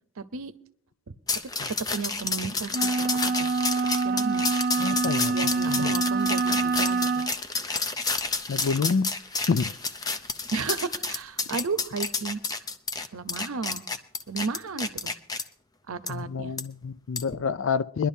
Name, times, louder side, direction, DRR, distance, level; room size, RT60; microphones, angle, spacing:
voice 1, 0.2-0.5 1.1-1.2 1.9-3.5 4.0-4.5 5.3-7.2 10.5-12.4 13.1-13.8 14.3-15.1 15.9-16.5, right 4 dB, 85° right, 0.7 m, -33 dB
sound 1, 1.3-15.4 16.1-16.2 16.6-16.7 17.2-17.3, left 3 dB, 20° left, 0.6 m, -30 dB
sound 2, 2.7-7.3, right 4 dB, 45° right, 0.6 m, -26 dB
voice 2, 4.8-5.4 5.7-5.9 8.5-9.1 9.5-9.7 16.1-18.1, left 5 dB, 65° left, 0.4 m, -27 dB
23.0 x 11.5 x 2.7 m
head